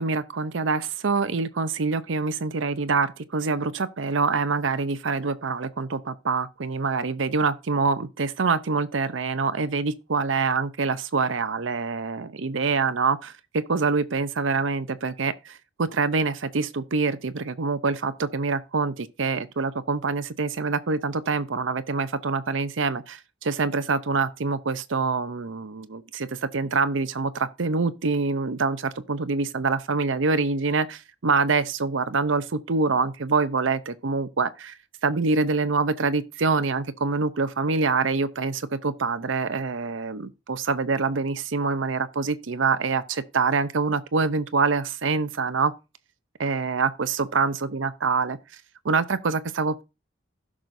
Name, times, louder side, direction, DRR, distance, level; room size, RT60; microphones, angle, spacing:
voice 1, 0.0-34.8 35.0-45.7 46.4-48.4 48.8-49.8, right 4 dB, 75° right, 0.7 m, -25 dB
16.0 x 6.2 x 2.6 m
head